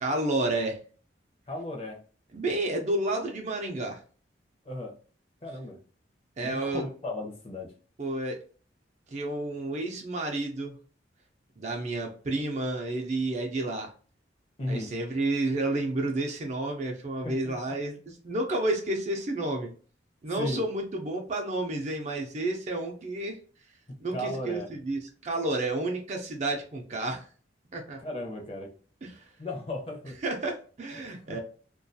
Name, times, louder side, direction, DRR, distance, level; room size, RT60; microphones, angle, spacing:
voice 1, 0.0-0.8 2.3-4.0 6.4-6.8 8.0-8.4 9.1-10.8 11.6-13.9 14.7-18.0 18.2-19.7 20.2-23.4 24.0-27.2 27.7-28.0 29.0-29.1 30.2-31.4, right 2 dB, 40° right, 2 dB, 0.4 m, -30 dB
voice 2, 1.5-2.0 4.6-4.9 5.4-5.8 6.4-7.7 14.6-14.9 17.2-17.8 20.4-20.6 24.1-24.7 28.0-28.7 29.4-30.2 30.9-31.0 31.3-31.4, left 1 dB, 30° left, 1 dB, 0.6 m, -35 dB
2.3 x 2.3 x 2.6 m, 0.40 s
head